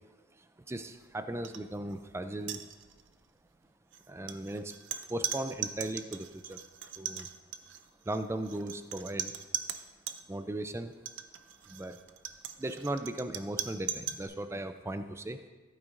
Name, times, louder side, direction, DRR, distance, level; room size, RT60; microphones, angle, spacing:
voice 1, 0.7-2.6 4.1-4.7 5.1-6.6 7.0-7.3 8.1-9.3 10.3-10.9 11.7-12.0 12.6-15.4, right 1 dB, 15° right, 10 dB, 0.4 m, -37 dB
sound 1, 1.4-1.6 1.9-2.1 2.4-3.1 3.9-10.2 10.9-14.3, right 10 dB, 70° right, 0.5 m, -39 dB
14.5 x 8.8 x 2.5 m, 1.3 s
head